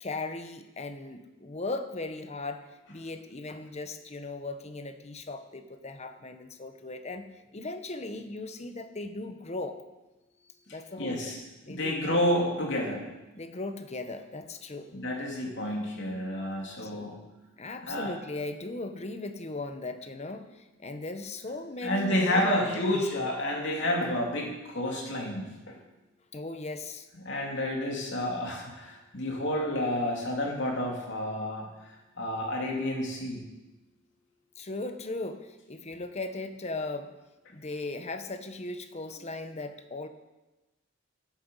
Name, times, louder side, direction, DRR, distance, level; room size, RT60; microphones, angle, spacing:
voice 1, 0.0-9.8 10.7-12.2 13.3-14.9 16.8-17.2 17.6-23.1 26.3-27.1 34.6-37.1 37.5-40.1, left 2 dB, 35° left, 8 dB, 0.9 m, -38 dB
voice 2, 11.0-11.4 11.7-13.1 14.9-17.2 17.8-18.1 21.8-25.7 27.2-31.7 32.2-33.5, left 1 dB, 60° left, -1 dB, 3.0 m, -30 dB
14.5 x 9.1 x 5.5 m, 1.1 s
head